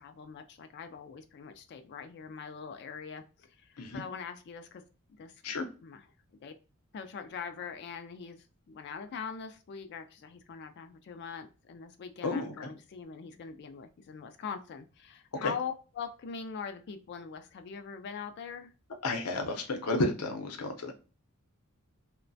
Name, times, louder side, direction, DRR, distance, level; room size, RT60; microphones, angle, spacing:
voice 1, 0.0-4.8 5.1-5.5 5.8-6.0 6.4-6.6 6.9-18.7, left 6 dB, 50° left, 8 dB, 0.3 m, -42 dB
voice 2, 12.2-12.7 15.4-15.5 19.0-20.9, left 2 dB, 85° left, 5 dB, 0.7 m, -32 dB
3.0 x 2.1 x 2.5 m, 0.34 s
head